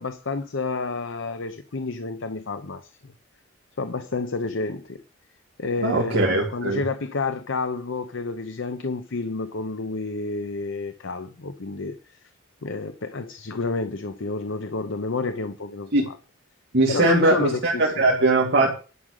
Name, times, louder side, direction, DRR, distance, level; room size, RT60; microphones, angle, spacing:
voice 1, 0.0-3.1 3.8-5.0 5.6-12.0 12.6-16.1 16.9-18.1, left 3 dB, 65° left, 0.8 m, -29 dB
voice 2, 5.8-6.8 15.9-16.1 16.7-18.7, right 2 dB, 55° right, 2.2 m, -20 dB
11.0 x 6.4 x 6.6 m
head